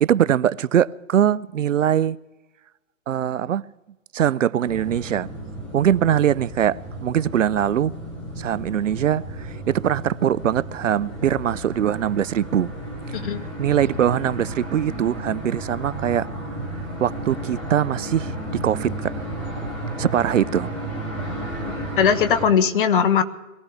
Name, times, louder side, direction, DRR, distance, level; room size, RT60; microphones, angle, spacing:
voice 1, 0.0-2.2 3.1-3.6 4.1-5.3 5.7-7.9 8.4-12.7 13.1-13.2 13.6-16.3 17.0-19.1 20.0-20.7, right 10 dB, 70° right, 0.6 m, -22 dB
sound 1, 4.6-22.5, right 1 dB, 5° left, 0.4 m, -33 dB
voice 2, 13.1-13.4 22.0-23.2, left 7 dB, 40° left, 1.3 m, -19 dB
22.5 x 16.5 x 3.5 m
hypercardioid pair, 140°, 39 cm